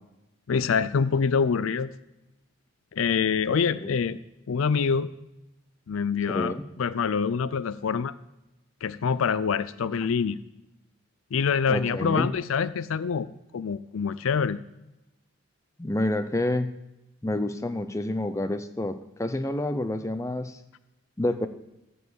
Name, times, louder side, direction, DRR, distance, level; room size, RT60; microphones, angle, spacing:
voice 1, 0.5-1.9 2.9-4.2 4.5-5.1 5.9-8.1 8.8-10.4 11.3-13.3 13.5-14.6, left 6 dB, 80° left, 16 dB, 0.4 m, -25 dB
voice 2, 6.3-6.7 11.7-12.3 15.8-16.7 17.2-20.6 21.2-21.5, left 1 dB, 15° left, 10 dB, 0.5 m, -28 dB
14.0 x 5.4 x 8.0 m, 0.93 s
head